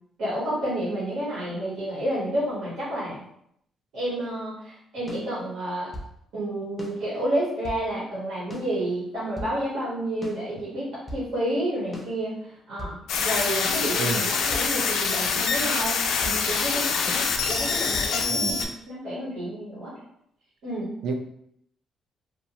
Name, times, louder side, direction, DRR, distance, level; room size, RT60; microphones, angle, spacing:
voice 1, 0.2-3.2 3.9-5.9 6.3-19.9 20.6-20.9, right 1 dB, 85° right, -8 dB, 1.0 m, -30 dB
sound 1, 5.1-6.2 6.8-7.9 8.5-9.6 10.2-11.3 11.9-13.0 13.6-14.7 15.4-16.4 17.1-18.1, left 1 dB, 10° left, 0.4 m, -40 dB
sound 2, 13.1-18.7, left 5 dB, 90° left, 0.3 m, -25 dB
voice 2, 14.0-14.2 18.3-18.6 21.0-21.1, right 4 dB, 70° right, 5 dB, 0.3 m, -29 dB
2.6 x 2.1 x 2.8 m, 0.72 s
cardioid pair, 180°, 0 cm